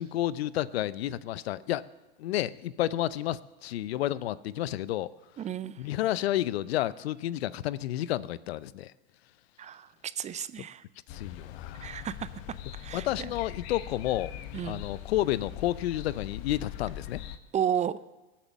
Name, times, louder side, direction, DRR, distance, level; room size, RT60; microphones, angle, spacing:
voice 1, 0.0-1.8 2.2-5.1 5.8-8.9 11.1-12.0 12.9-14.3 14.6-17.2, left 13 dB, 75° left, 18 dB, 0.6 m, -31 dB
voice 2, 5.4-5.8 9.6-10.8 11.8-12.3 12.7-13.3 14.5-14.8 17.5-18.0, right 9 dB, 25° right, 15 dB, 0.5 m, -33 dB
sound 1, 11.1-17.4, left 11 dB, 55° left, 1.1 m, -41 dB
19.0 x 7.4 x 7.3 m, 1.1 s
hypercardioid pair, 95°, 31 cm